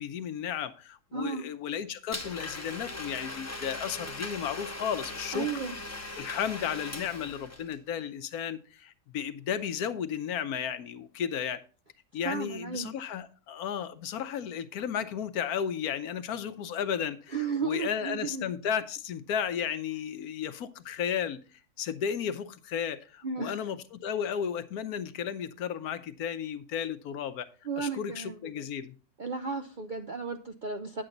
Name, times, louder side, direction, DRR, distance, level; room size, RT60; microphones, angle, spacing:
voice 1, 0.0-5.5 6.2-11.6 12.1-17.3 17.6-21.4 21.8-27.5 27.8-28.9, left 8 dB, 75° left, 1.2 m, -34 dB
voice 2, 1.1-1.4 5.3-5.7 12.2-12.9 17.3-18.5 23.2-23.6 27.6-28.7 29.2-31.0, right 5 dB, 55° right, 0.5 m, -34 dB
Domestic sounds home sounds, 2.1-7.8, left 2 dB, 15° left, 0.7 m, -39 dB
9.7 x 7.8 x 3.9 m
omnidirectional pair, 1.6 m